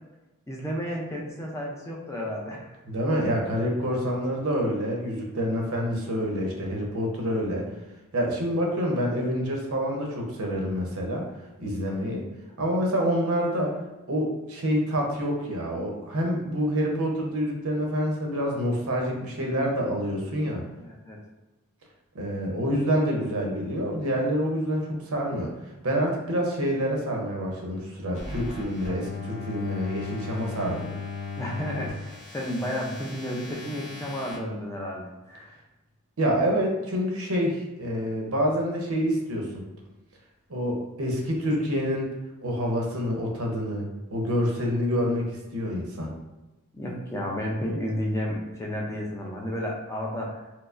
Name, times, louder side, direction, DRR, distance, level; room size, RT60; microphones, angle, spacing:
voice 1, 0.5-2.7 20.8-21.2 31.4-35.6 46.7-50.4, equal, 15° left, -2 dB, 0.5 m, -32 dB
voice 2, 2.8-7.7 8.1-11.2 11.6-12.2 12.6-13.8 14.1-20.6 22.1-25.5 25.8-30.9 36.2-39.6 40.5-42.1 42.4-43.9 44.1-46.1, equal, 75° right, 0 dB, 0.8 m, -27 dB
sound 1, 28.1-34.4, left 4 dB, 35° left, 1.0 m, -37 dB
4.4 x 2.0 x 2.5 m, 1.0 s
head